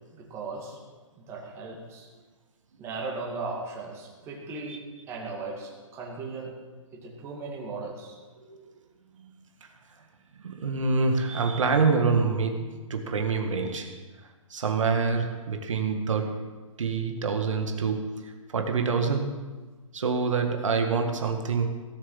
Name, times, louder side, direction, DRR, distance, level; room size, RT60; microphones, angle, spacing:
voice 1, 0.1-0.8 1.2-2.1 2.8-4.8 5.1-6.5 6.9-8.2, right 3 dB, 15° right, -1 dB, 2.2 m, -37 dB
voice 2, 10.4-14.0 14.5-16.5 16.8-19.5 19.9-21.9, right 4 dB, 65° right, 4 dB, 1.8 m, -26 dB
17.0 x 7.1 x 7.3 m, 1.3 s
hypercardioid pair, 160°, 17 cm